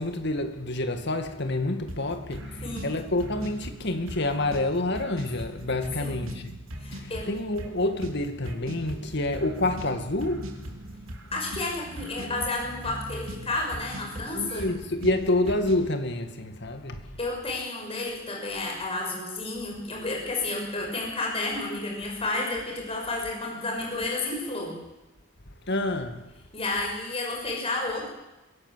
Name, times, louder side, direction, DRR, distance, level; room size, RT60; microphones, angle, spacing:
voice 1, 0.0-6.5 6.9-10.5 14.3-17.1 25.7-26.2, left 2 dB, 55° left, 2.2 m, -28 dB
sound 1, 1.9-15.9, equal, 90° right, 3.0 m, -40 dB
voice 2, 6.8-7.3 11.3-14.7 17.2-24.7 26.5-28.1, left 2 dB, 30° left, 6.2 m, -31 dB
23.5 x 17.0 x 7.6 m
head